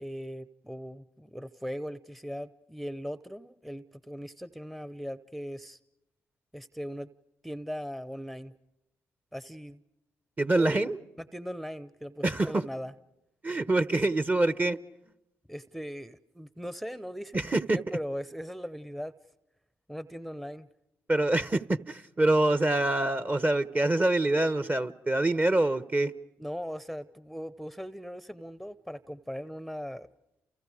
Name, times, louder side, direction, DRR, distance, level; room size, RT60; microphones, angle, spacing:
voice 1, 0.0-5.8 6.5-7.1 7.4-8.5 9.3-9.8 10.5-10.9 11.3-12.9 15.5-19.1 19.9-20.7 26.4-30.1, equal, ahead, 0.8 m, -39 dB
voice 2, 10.4-11.0 12.2-12.6 13.4-14.8 17.3-17.8 21.1-26.1, right 2 dB, 25° right, 1.1 m, -25 dB
29.5 x 29.5 x 5.0 m
supercardioid pair, 50°, 7 cm